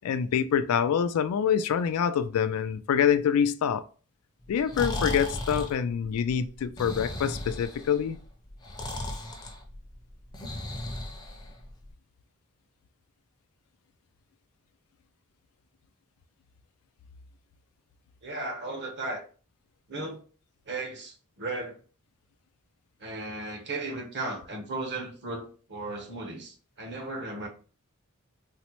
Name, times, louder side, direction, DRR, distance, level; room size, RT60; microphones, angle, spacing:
voice 1, 0.0-3.8 4.5-8.2, left 8 dB, 75° left, 0.3 m, -26 dB
Breathing, 4.4-11.9, left 1 dB, 20° left, 0.5 m, -36 dB
voice 2, 18.2-19.2 19.9-20.2 20.7-21.8 23.0-27.5, right 2 dB, 55° right, 0.9 m, -35 dB
4.0 x 2.0 x 2.9 m
head